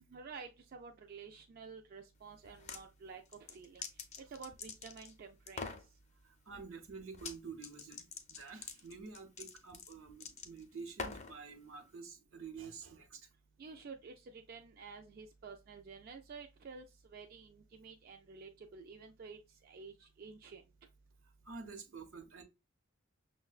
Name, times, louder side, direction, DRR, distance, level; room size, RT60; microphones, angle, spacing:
voice 1, 0.0-5.7 13.6-20.6, right 5 dB, 45° right, 0.3 m, -51 dB
sound 1, 2.4-2.8 3.3-5.1 5.5-5.9 7.1-7.4 7.6-11.4, left 4 dB, 35° left, 0.5 m, -45 dB
voice 2, 6.2-13.3 21.4-22.4, right 5 dB, 75° right, 0.7 m, -49 dB
5.8 x 2.1 x 2.3 m
head